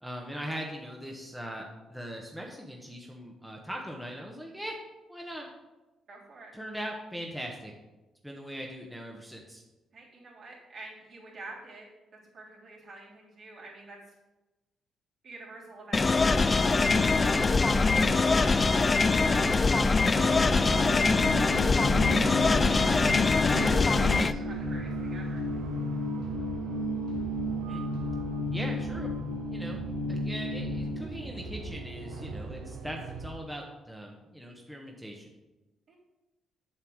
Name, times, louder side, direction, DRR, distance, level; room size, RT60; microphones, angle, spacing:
voice 1, 0.0-4.7 5.1-5.5 6.5-7.7 8.2-9.6 24.1-24.2 27.7-27.8 28.5-29.1 29.5-29.8 30.1-35.3, equal, 5° right, 0 dB, 1.1 m, -40 dB
voice 2, 6.1-6.5 9.9-11.9 12.3-14.0 15.2-19.5 20.1-23.1 23.5-25.4 35.9-36.0, right 3 dB, 55° right, -5 dB, 3.3 m, -47 dB
sound 1, 15.9-24.3, left 3 dB, 30° left, 0.3 m, -23 dB
sound 2, 16.1-33.3, right 3 dB, 85° right, 1.0 m, -41 dB
sound 3, 19.4-31.0, left 1 dB, 70° left, 0.9 m, -34 dB
7.5 x 6.9 x 4.6 m, 1.1 s
cardioid pair, 90°, 0 cm